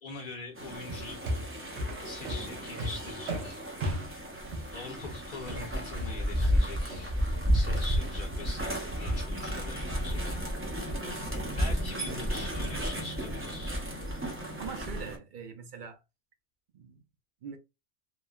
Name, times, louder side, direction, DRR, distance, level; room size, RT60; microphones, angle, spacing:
voice 1, 0.0-1.2 2.0-3.6 4.7-7.1 7.5-10.7 11.5-13.8, left 3 dB, 55° left, 0.8 m, -43 dB
sound 1, 0.6-15.2, equal, 20° right, 0.4 m, -33 dB
sound 2, 0.9-7.1, equal, 85° right, 0.9 m, -36 dB
voice 2, 14.6-16.0 16.7-17.0 17.4-17.6, right 6 dB, 55° right, 0.7 m, -42 dB
3.0 x 2.0 x 2.2 m
omnidirectional pair, 1.1 m